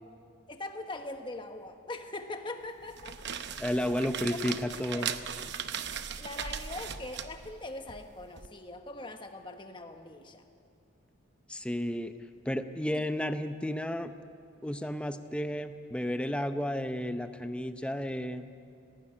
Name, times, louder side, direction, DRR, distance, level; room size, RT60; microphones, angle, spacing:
voice 1, 0.5-3.2 3.7-3.8 4.9-5.0 6.2-10.4 12.9-13.0, left 2 dB, 25° left, 6 dB, 1.2 m, -41 dB
sound 1, 2.8-8.5, right 7 dB, 55° right, 0.8 m, -38 dB
voice 2, 3.6-5.1 11.5-12.1 12.5-14.1 14.6-18.5, equal, 5° left, 9 dB, 0.7 m, -32 dB
18.5 x 16.0 x 9.7 m, 2.5 s
head